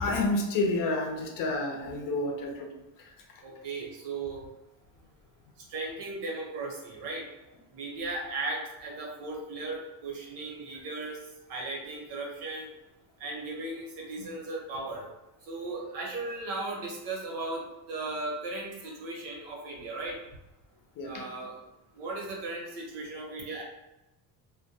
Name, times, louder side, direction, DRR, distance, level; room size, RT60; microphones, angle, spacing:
voice 1, 0.0-2.7 21.0-21.1, left 2 dB, 55° left, 2 dB, 0.5 m, -29 dB
voice 2, 3.4-4.4 5.7-7.3 7.7-11.2 11.5-12.7 13.2-15.1 15.4-20.2 21.0-21.5 22.0-23.6, right 2 dB, 90° right, -2 dB, 0.9 m, -36 dB
2.2 x 2.2 x 2.7 m, 0.96 s
cardioid pair, 165°, 41 cm